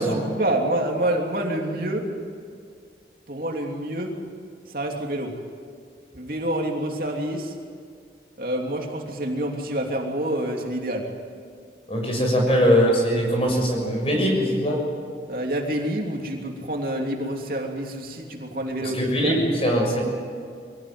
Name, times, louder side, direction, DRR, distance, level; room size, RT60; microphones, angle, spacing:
voice 1, 0.0-2.1 3.3-4.1 4.7-5.3 6.1-7.5 8.4-11.1 12.5-12.6 15.3-19.4, right 1 dB, 55° right, 1 dB, 3.0 m, -27 dB
voice 2, 11.9-14.8 18.8-20.0, equal, 35° left, 1 dB, 6.6 m, -21 dB
24.5 x 17.5 x 9.6 m, 2.2 s
head